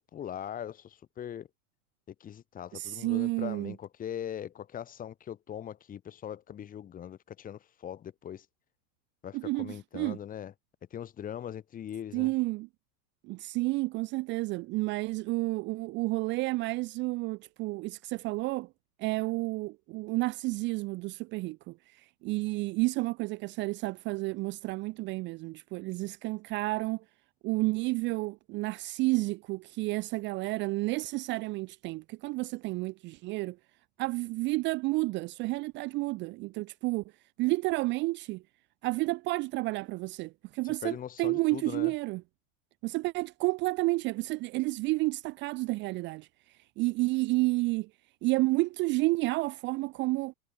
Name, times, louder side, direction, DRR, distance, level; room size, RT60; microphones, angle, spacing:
voice 1, 0.1-1.5 2.2-8.5 9.2-10.5 10.9-12.3 40.6-41.9, left 10 dB, 20° left, 2.0 m, -40 dB
voice 2, 2.7-3.7 9.3-10.2 12.1-12.7 13.2-18.7 19.0-27.0 27.4-33.6 34.0-37.0 37.4-38.4 38.8-42.2 42.8-46.3 46.8-47.9 48.2-50.3, right 22 dB, 25° right, 0.7 m, -31 dB
supercardioid pair, 155°, 43 cm